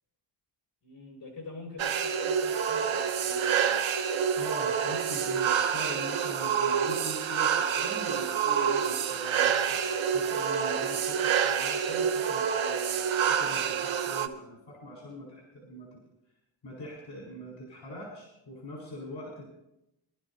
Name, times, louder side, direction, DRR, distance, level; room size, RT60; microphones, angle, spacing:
voice 1, 0.8-3.9, left 3 dB, 45° left, 0 dB, 5.9 m, -45 dB
sound 1, 1.8-14.3, right 7 dB, 75° right, 0.9 m, -27 dB
voice 2, 4.3-15.9 16.6-19.5, equal, 70° left, -4 dB, 4.3 m, -42 dB
22.0 x 12.5 x 2.7 m, 0.87 s
wide cardioid pair, 110°, 47 cm